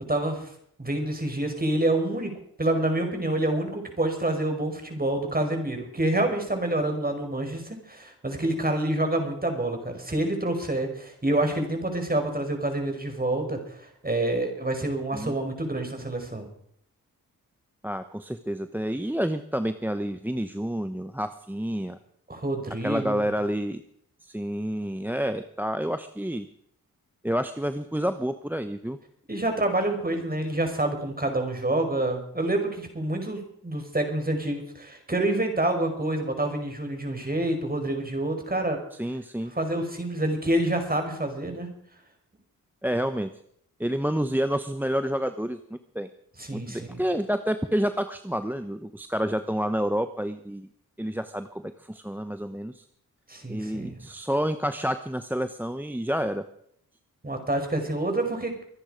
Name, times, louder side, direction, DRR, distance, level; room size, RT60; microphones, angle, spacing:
voice 1, 0.1-0.5 0.8-2.3 2.6-16.5 22.3-23.3 29.3-38.8 39.6-41.7 46.4-47.0 53.3-54.1 57.2-58.5, right 1 dB, 25° right, 5 dB, 5.3 m, -27 dB
voice 2, 17.8-22.0 22.8-23.8 24.2-26.5 27.2-29.0 39.0-39.5 42.8-43.3 43.8-45.6 45.9-46.1 46.5-50.7 51.0-51.6 51.9-52.8 53.5-56.4, equal, 5° right, 10 dB, 0.9 m, -29 dB
24.5 x 10.0 x 5.1 m, 0.68 s
cardioid pair, 50°, 37 cm